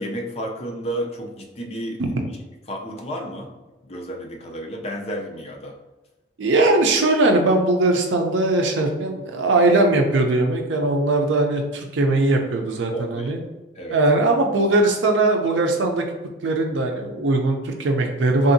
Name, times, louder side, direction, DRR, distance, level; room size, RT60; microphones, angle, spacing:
voice 1, 0.0-2.0 2.7-3.5 3.8-5.8 12.9-13.3 13.8-14.0, equal, 35° left, 1 dB, 0.4 m, -31 dB
voice 2, 6.4-13.4 13.9-16.0 16.4-18.5, right 2 dB, 85° right, 3 dB, 0.5 m, -20 dB
3.4 x 2.7 x 2.6 m, 1.1 s
head